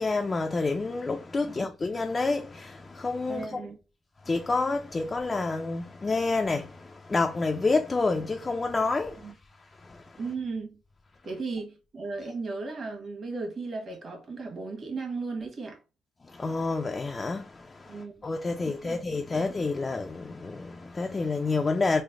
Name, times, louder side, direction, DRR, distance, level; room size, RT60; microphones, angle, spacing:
voice 1, 0.0-3.6 4.3-9.3 9.8-10.0 16.3-22.0, left 3 dB, 30° left, 0.3 m, -29 dB
voice 2, 3.3-3.8 9.2-9.3 10.2-10.8 11.2-15.8 17.9-19.0, right 4 dB, 45° right, 1.2 m, -36 dB
3.2 x 2.0 x 3.5 m
cardioid pair, 90°, 0 cm